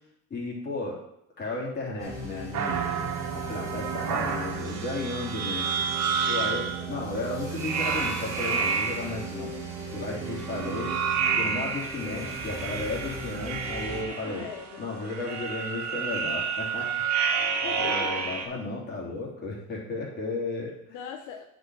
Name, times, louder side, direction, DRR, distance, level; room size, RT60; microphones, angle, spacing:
voice 1, 0.3-1.0 1.4-2.8 3.3-5.7 6.2-9.5 9.9-10.9 11.3-14.4 14.8-16.9 17.8-20.7, left 3 dB, 35° left, -4 dB, 3.2 m, -34 dB
sound 1, 2.0-14.0, left 1 dB, 10° right, 2.2 m, -40 dB
sound 2, 2.5-6.8 7.5-9.3 10.3-18.4, right 6 dB, 65° right, 1.6 m, -30 dB
Brass instrument, 2.6-12.1, right 16 dB, 85° right, 0.8 m, -39 dB
voice 2, 3.9-4.4 5.6-5.8 6.6-7.2 12.0-12.4 14.1-15.1 17.6-18.3 20.9-21.5, left 8 dB, 90° left, 3 dB, 0.9 m, -42 dB
9.3 x 5.2 x 4.8 m, 0.78 s
cardioid pair, 125°, 30 cm